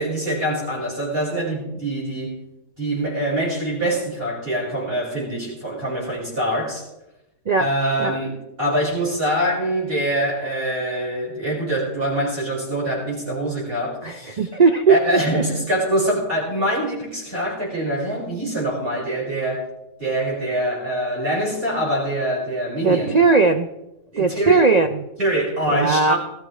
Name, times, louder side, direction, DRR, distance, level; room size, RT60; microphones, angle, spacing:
voice 1, 0.0-2.4 2.8-6.8 7.6-14.4 14.9-19.6 20.0-23.2 24.1-24.6 25.2-26.2, right 1 dB, 40° right, -5 dB, 5.9 m, -24 dB
voice 2, 14.0-15.0 22.8-23.7 24.2-25.0 25.7-26.1, right 4 dB, 75° right, 7 dB, 0.3 m, -18 dB
19.0 x 13.5 x 3.2 m, 0.91 s
omnidirectional pair, 1.5 m